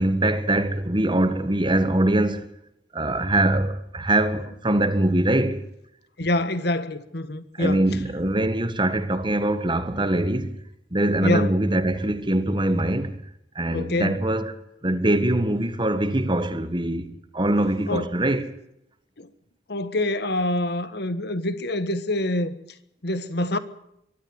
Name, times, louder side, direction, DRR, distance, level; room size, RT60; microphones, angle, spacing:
voice 1, 0.0-2.5 2.9-5.6 7.6-10.6 10.9-13.2 13.5-14.5 14.8-18.5, right 1 dB, 25° right, 1.5 m, -23 dB
voice 2, 6.2-7.8 11.2-11.5 13.7-14.2 17.9-18.1 19.2-19.3 19.7-22.6 23.0-23.6, left 1 dB, 65° left, 1.5 m, -26 dB
23.0 x 13.0 x 9.6 m
head